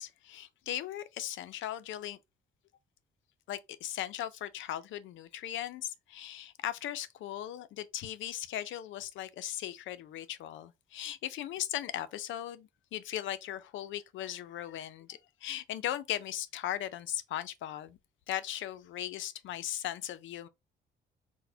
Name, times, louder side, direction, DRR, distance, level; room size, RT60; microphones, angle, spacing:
voice 1, 0.0-2.2 3.5-18.0 18.3-20.5, left 12 dB, 75° left, 0.4 m, -38 dB
3.9 x 2.1 x 2.7 m
cardioid pair, 90°, 20 cm